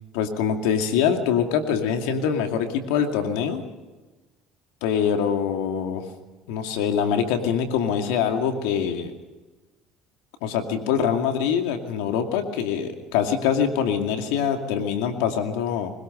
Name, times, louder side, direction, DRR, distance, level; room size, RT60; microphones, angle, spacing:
voice 1, 0.1-3.6 4.8-6.0 6.5-9.1 10.4-15.9, left 7 dB, 80° left, 6 dB, 2.4 m, -24 dB
21.0 x 20.0 x 6.8 m, 1.2 s
hypercardioid pair, 75°, 0 cm